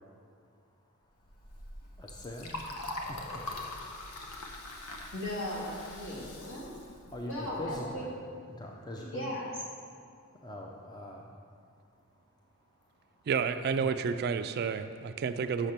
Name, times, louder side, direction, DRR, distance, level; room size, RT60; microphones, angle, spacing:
Liquid, 1.2-7.9, left 2 dB, 90° left, 1.0 m, -43 dB
voice 1, 2.0-3.4 7.1-8.1 8.5-9.3 10.4-11.3 13.8-14.0, left 1 dB, 20° left, 0 dB, 0.5 m, -42 dB
voice 2, 5.1-6.8 7.2-8.1 9.0-9.5, left 1 dB, 60° left, -5 dB, 2.3 m, -37 dB
voice 3, 13.3-15.7, right 6 dB, 45° right, 10 dB, 0.3 m, -30 dB
6.6 x 6.5 x 5.9 m, 2.2 s
head